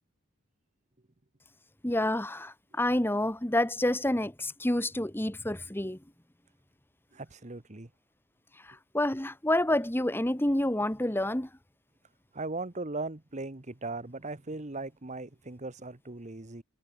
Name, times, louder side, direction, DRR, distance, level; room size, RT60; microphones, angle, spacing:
voice 1, 1.8-6.0 8.6-11.5, left 1 dB, 10° left, 1.2 m, -28 dB
voice 2, 7.1-7.9 12.3-16.6, right 3 dB, 35° right, 1.2 m, -38 dB
head